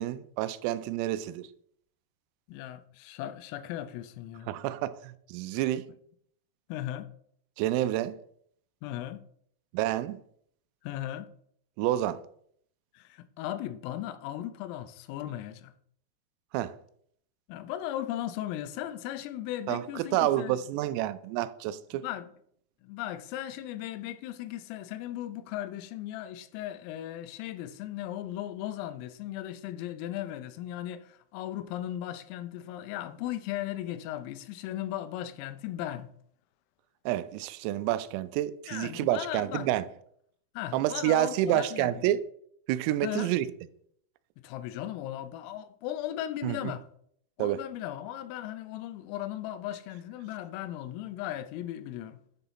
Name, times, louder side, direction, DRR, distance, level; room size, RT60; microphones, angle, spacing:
voice 1, 0.0-1.5 4.5-5.9 7.6-8.2 9.7-10.2 11.8-12.2 16.5-16.8 19.7-22.0 37.1-39.9 40.7-42.2 42.7-43.5 46.4-46.7 47.4-47.6, right 13 dB, 85° right, 3.2 m, -29 dB
voice 2, 2.5-4.5 6.7-7.1 8.8-9.2 10.8-11.3 12.9-15.7 17.5-20.6 22.0-22.3 22.8-36.1 38.7-39.7 40.5-42.0 43.0-43.3 44.4-46.8 47.4-52.2, left 12 dB, 85° left, 3.3 m, -37 dB
10.0 x 5.7 x 4.0 m
omnidirectional pair, 5.9 m